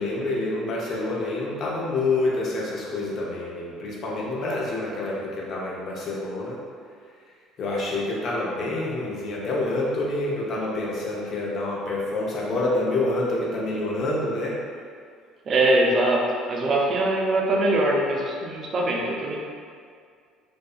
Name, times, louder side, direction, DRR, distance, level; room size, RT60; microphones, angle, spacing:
voice 1, 0.0-6.6 7.6-14.6, left 2 dB, 50° left, -5 dB, 0.6 m, -27 dB
voice 2, 15.5-19.4, right 1 dB, 45° right, -1 dB, 0.4 m, -22 dB
2.5 x 2.1 x 2.4 m, 2.1 s
hypercardioid pair, 65°, 0 cm